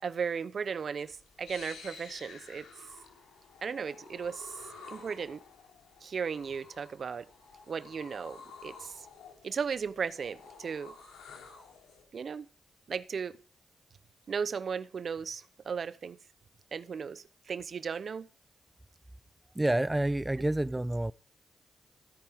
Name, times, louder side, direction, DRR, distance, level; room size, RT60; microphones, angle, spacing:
voice 1, 0.0-2.7 3.6-4.6 4.9-5.4 6.0-7.3 7.7-9.0 9.4-10.9 12.1-12.5 12.9-13.4 14.3-16.2 16.7-18.3, right 6 dB, 65° right, 0.9 m, -36 dB
sound 1, 1.0-12.0, left 4 dB, 90° left, 3.5 m, -51 dB
voice 2, 19.6-21.1, right 1 dB, 15° right, 0.4 m, -28 dB
16.5 x 9.9 x 3.7 m
supercardioid pair, 40°, 0 cm